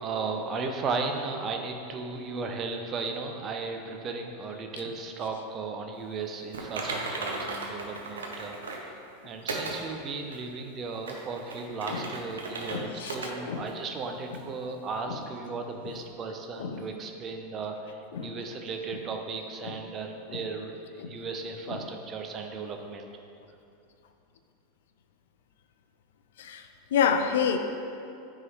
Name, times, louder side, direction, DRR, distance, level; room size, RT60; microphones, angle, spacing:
voice 1, 0.0-8.9 9.2-23.1, right 4 dB, 35° right, 4 dB, 0.7 m, -35 dB
Typing, 6.5-8.9 9.5-9.8 10.3-10.4 10.9-12.8 13.1-13.3 13.7-13.8 14.3-14.4, right 3 dB, 85° right, 0.8 m, -36 dB
voice 2, 12.7-13.7 16.6-16.8 18.1-18.3 19.6-19.8 20.3-20.4 21.0-21.1 21.7-21.8 26.4-26.6 26.9-27.6, left 7 dB, 75° left, 8 dB, 0.4 m, -29 dB
9.5 x 3.8 x 3.1 m, 2.6 s
hypercardioid pair, 95°, 0 cm